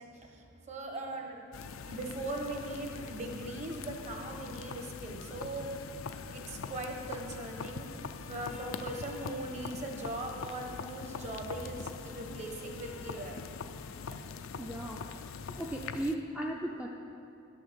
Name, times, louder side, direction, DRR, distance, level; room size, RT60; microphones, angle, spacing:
voice 1, 0.0-5.7 6.3-13.4, right 1 dB, 35° right, 2 dB, 1.1 m, -40 dB
sound 1, 1.5-16.1, left 5 dB, 80° left, 0.5 m, -43 dB
voice 2, 14.6-15.3 15.6-16.9, right 1 dB, 5° right, -2 dB, 0.5 m, -36 dB
11.0 x 6.6 x 6.9 m, 2.8 s
head